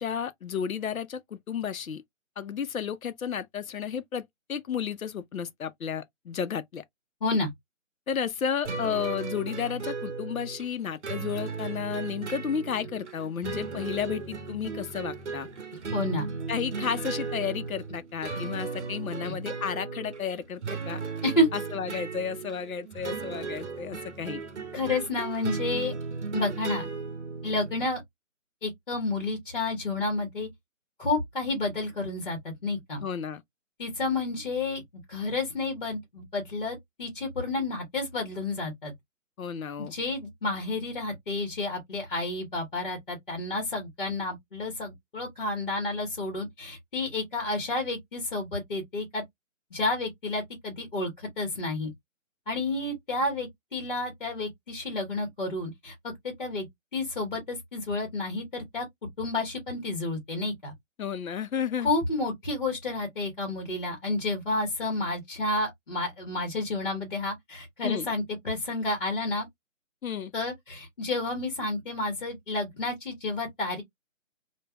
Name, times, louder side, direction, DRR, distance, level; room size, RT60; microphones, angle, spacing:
voice 1, 0.0-2.0 2.4-6.8 8.1-15.5 16.5-21.0 21.5-24.4 33.0-33.4 39.4-39.9 61.0-61.9 67.8-68.1 70.0-70.3, left 7 dB, 90° left, 0.6 m, -32 dB
sound 1, 8.7-27.9, right 4 dB, 60° right, 0.7 m, -36 dB
voice 2, 15.9-16.3 19.2-19.3 21.2-21.5 24.7-25.9 26.3-26.8 27.4-28.0 28.6-30.5 31.0-33.0 33.8-34.8 35.1-38.9 39.8-49.2 49.7-51.9 52.5-56.7 56.9-58.8 59.2-60.7 61.8-69.5 70.3-73.8, left 2 dB, 40° left, 1.0 m, -30 dB
3.2 x 2.2 x 2.2 m
figure-of-eight pair, 160°, 40 cm